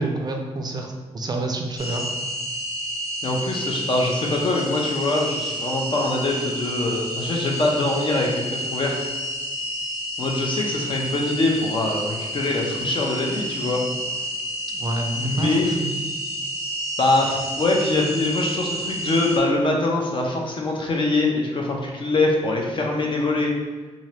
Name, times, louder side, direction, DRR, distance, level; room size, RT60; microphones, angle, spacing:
voice 1, 0.0-2.1 14.7-15.9, right 2 dB, 35° right, 2 dB, 0.4 m, -28 dB
sound 1, 1.8-19.4, equal, ahead, 1.0 m, -30 dB
voice 2, 3.2-8.9 10.2-13.8 15.1-15.7 17.0-23.5, left 2 dB, 45° left, 0 dB, 0.6 m, -23 dB
3.7 x 2.7 x 3.2 m, 1.3 s
wide cardioid pair, 160°, 12 cm